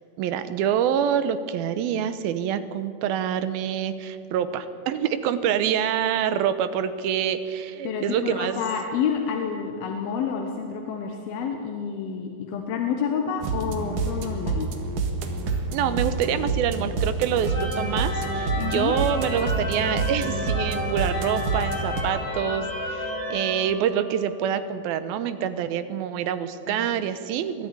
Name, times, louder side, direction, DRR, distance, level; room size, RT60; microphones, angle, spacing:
voice 1, 0.2-8.6 15.7-27.7, right 9 dB, 75° right, 12 dB, 2.6 m, -26 dB
voice 2, 7.8-14.7 18.6-18.9 26.7-26.9, left 7 dB, 75° left, 3 dB, 3.1 m, -29 dB
sound 1, 13.4-22.0, right 3 dB, 60° right, 3.0 m, -28 dB
sound 2, 17.3-24.3, left 1 dB, 35° left, 8.7 m, -32 dB
21.5 x 13.5 x 9.8 m, 2.4 s
omnidirectional pair, 4.5 m